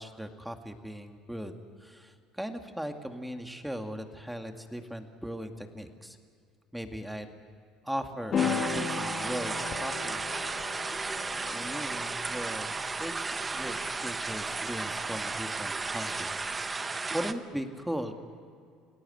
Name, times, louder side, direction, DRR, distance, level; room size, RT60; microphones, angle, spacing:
voice 1, 0.0-1.5 1.8-6.2 6.7-7.3 7.8-10.2 11.5-13.8 14.0-16.3 17.1-18.1, equal, 5° right, 5 dB, 2.2 m, -38 dB
sound 1, 8.3-16.7, left 6 dB, 45° left, 2.4 m, -37 dB
sound 2, 8.4-17.3, right 3 dB, 25° right, 1.1 m, -34 dB
27.5 x 17.5 x 8.0 m, 2.3 s
supercardioid pair, 80°, 0 cm